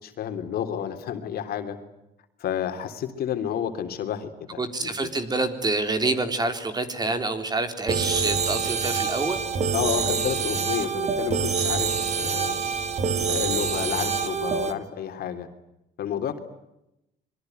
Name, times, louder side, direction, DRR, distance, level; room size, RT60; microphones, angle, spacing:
voice 1, 0.0-1.8 2.4-5.1 9.7-12.6 13.3-15.5 16.0-16.4, left 9 dB, 65° left, 7 dB, 3.5 m, -30 dB
voice 2, 4.6-9.4, right 3 dB, 25° right, 8 dB, 3.8 m, -27 dB
sound 1, 7.9-14.7, right 5 dB, 40° right, 3.0 m, -26 dB
26.5 x 22.5 x 9.4 m, 0.87 s
cardioid pair, 110°, 17 cm